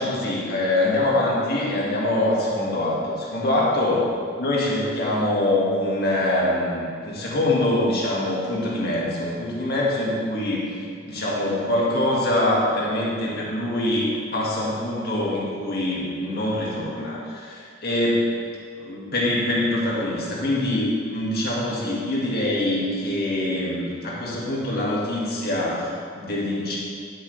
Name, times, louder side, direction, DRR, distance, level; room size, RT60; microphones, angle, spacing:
voice 1, 0.0-4.1 4.4-10.8 11.0-18.3 18.8-26.8, left 1 dB, 55° left, -5 dB, 2.0 m, -24 dB
10.5 x 8.2 x 3.3 m, 2.2 s
head